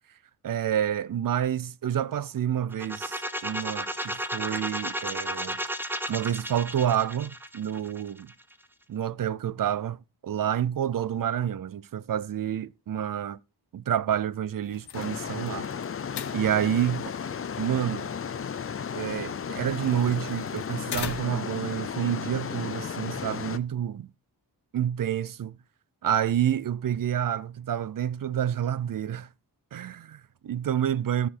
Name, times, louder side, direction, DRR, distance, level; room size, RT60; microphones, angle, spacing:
voice 1, 0.4-5.6 6.1-8.3 8.9-13.4 13.7-15.7 16.3-17.1 17.6-18.1 18.9-24.1 24.7-25.6 26.0-29.3 29.7-31.3, right 10 dB, 55° right, 0.5 m, -28 dB
sound 1, 2.7-8.5, equal, 5° right, 0.6 m, -33 dB
sound 2, 14.6-21.6, left 9 dB, 75° left, 0.8 m, -43 dB
sound 3, 14.9-23.6, left 7 dB, 35° left, 0.4 m, -34 dB
14.0 x 4.9 x 4.2 m
wide cardioid pair, 160°, 40 cm